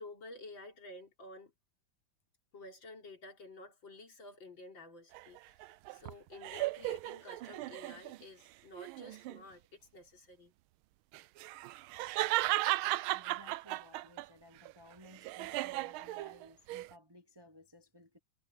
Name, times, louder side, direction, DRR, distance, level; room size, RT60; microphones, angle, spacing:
voice 1, 0.0-1.5 2.5-10.5, left 2 dB, 65° left, 4.7 m, -51 dB
sound 1, 5.1-8.2 8.7-9.4 11.1-14.3 14.7-16.9, right 17 dB, 90° right, 1.4 m, -36 dB
voice 2, 13.1-18.2, left 1 dB, 25° right, 0.6 m, -58 dB
omnidirectional pair, 2.2 m